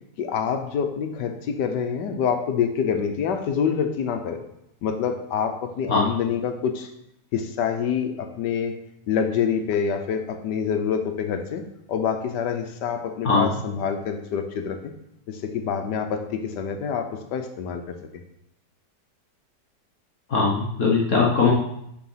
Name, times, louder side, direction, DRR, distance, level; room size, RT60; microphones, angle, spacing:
voice 1, 0.2-4.4 4.8-6.9 7.3-8.7 9.1-11.6 11.9-14.9 15.3-18.0, left 7 dB, 80° left, 7 dB, 1.4 m, -26 dB
voice 2, 20.3-21.5, left 4 dB, 60° left, -4 dB, 1.5 m, -20 dB
8.8 x 3.9 x 5.6 m, 0.77 s
omnidirectional pair, 1.8 m